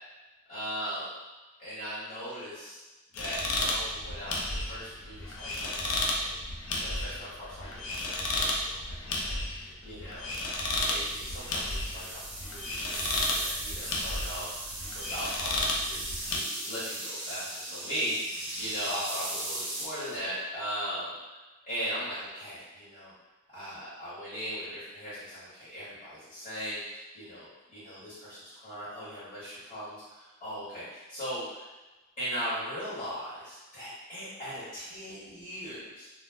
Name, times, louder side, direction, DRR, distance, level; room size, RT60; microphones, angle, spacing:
voice 1, 0.5-1.1 1.6-2.8 3.1-4.4 4.7-6.3 6.7-12.2 12.4-21.1 21.6-23.1 23.5-31.6 32.2-36.1, equal, 25° left, -12 dB, 1.2 m, -39 dB
sound 1, 3.1-16.4, left 2 dB, 75° left, 0.5 m, -33 dB
sound 2, 10.8-20.2, right 1 dB, 50° right, 0.6 m, -38 dB
2.4 x 2.1 x 3.2 m, 1.2 s
head